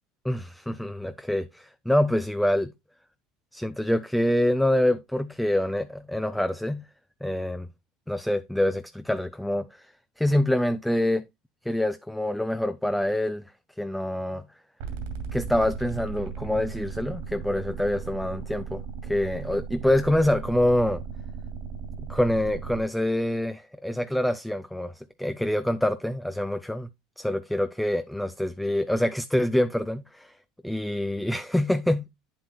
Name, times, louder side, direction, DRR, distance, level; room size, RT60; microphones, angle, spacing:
voice 1, 0.2-2.7 3.5-6.8 7.2-7.7 8.1-9.9 10.2-11.2 11.7-13.4 13.8-14.4 15.3-21.0 22.1-26.9 27.2-30.3 30.7-32.1, left 1 dB, 5° left, 0.4 m, -26 dB
sound 1, 14.8-22.8, right 6 dB, 80° right, 2.5 m, -36 dB
8.8 x 7.5 x 2.2 m
supercardioid pair, 125°, 0 cm